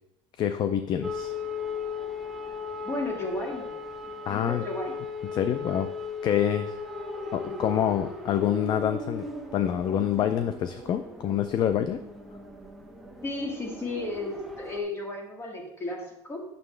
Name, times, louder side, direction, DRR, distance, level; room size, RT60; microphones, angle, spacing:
voice 1, 0.4-1.3 4.3-4.6 5.3-5.9 6.2-6.7 7.3-9.3 9.5-12.0, left 10 dB, 35° left, 10 dB, 0.4 m, -26 dB
sound 1, 1.0-14.8, left 3 dB, ahead, 0.9 m, -37 dB
voice 2, 2.8-3.7 4.0-5.0 7.5-7.6 13.2-16.4, left 2 dB, 20° left, 0 dB, 2.0 m, -34 dB
9.2 x 6.8 x 3.3 m, 0.83 s
cardioid pair, 135°, 13 cm